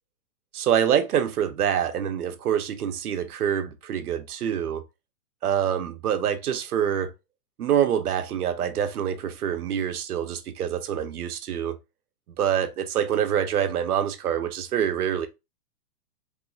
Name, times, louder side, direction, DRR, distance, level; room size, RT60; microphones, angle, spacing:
voice 1, 0.5-4.8 5.4-7.1 7.6-11.8 12.4-15.3, right 9 dB, 75° right, 0.7 m, -26 dB
3.3 x 3.1 x 2.3 m
hypercardioid pair, 175°, 45 cm